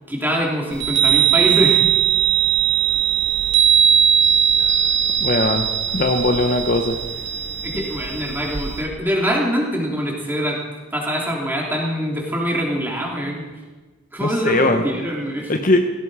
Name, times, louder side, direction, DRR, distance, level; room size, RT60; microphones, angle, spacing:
voice 1, 0.1-1.8 7.6-10.6 10.9-13.5 14.1-15.7, equal, 10° right, -2 dB, 3.3 m, -24 dB
Chime, 0.7-8.8, right 9 dB, 60° right, 2.6 m, -19 dB
voice 2, 5.2-5.7 5.9-6.9 14.2-14.8 15.5-15.8, left 2 dB, 40° left, 5 dB, 1.0 m, -19 dB
17.5 x 16.5 x 5.0 m, 1.2 s
head